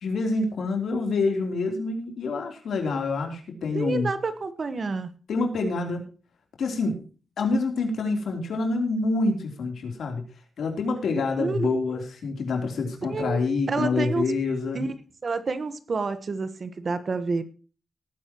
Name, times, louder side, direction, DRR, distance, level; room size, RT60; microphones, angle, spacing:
voice 1, 0.0-4.1 5.3-6.1 6.6-7.0 7.4-10.3 10.6-14.8, left 3 dB, 80° left, 3 dB, 3.4 m, -27 dB
voice 2, 3.7-5.1 11.4-12.0 13.0-13.4 13.7-14.3 14.7-14.9 15.2-17.4, right 4 dB, 45° right, 11 dB, 1.3 m, -29 dB
18.0 x 9.7 x 3.0 m, 0.36 s
wide cardioid pair, 130°, 0 cm